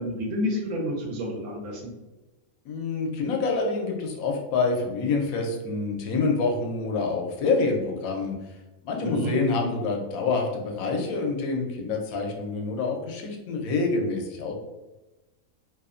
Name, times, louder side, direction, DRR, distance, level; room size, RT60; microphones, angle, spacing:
voice 1, 0.0-1.9 9.0-9.3, left 1 dB, 90° right, -1 dB, 1.2 m, -29 dB
voice 2, 2.7-8.3 8.8-14.5, left 3 dB, 85° left, 1 dB, 1.0 m, -27 dB
2.8 x 2.0 x 2.4 m, 1.1 s
omnidirectional pair, 1.4 m